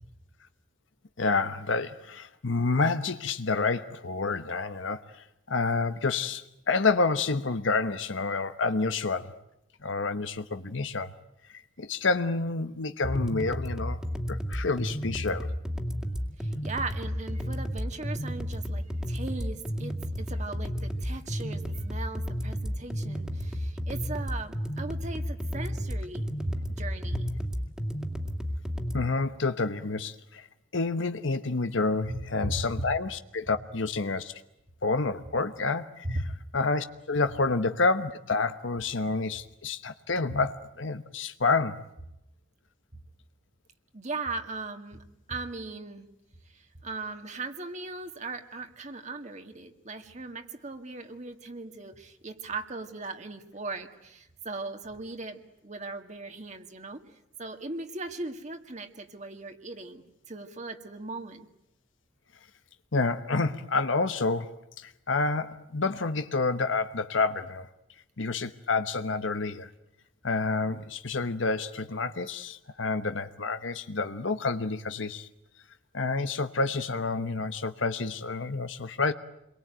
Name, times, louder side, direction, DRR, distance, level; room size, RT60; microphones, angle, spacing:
voice 1, 1.2-5.0 5.5-9.3 9.8-11.1 11.8-14.0 14.3-15.5 28.9-30.5 30.7-34.3 34.8-36.2 36.5-41.8 62.9-67.7 68.2-69.7 70.2-75.3 75.9-79.1, left 3 dB, 80° left, 10 dB, 1.1 m, -29 dB
sound 1, 13.0-29.0, equal, 5° right, 2.4 m, -32 dB
voice 2, 16.4-27.3 32.1-32.6 36.0-36.2 43.9-45.0 45.3-46.1 46.5-57.0 57.4-61.5, right 3 dB, 35° right, 6 dB, 2.0 m, -38 dB
29.0 x 23.0 x 9.1 m, 0.86 s
head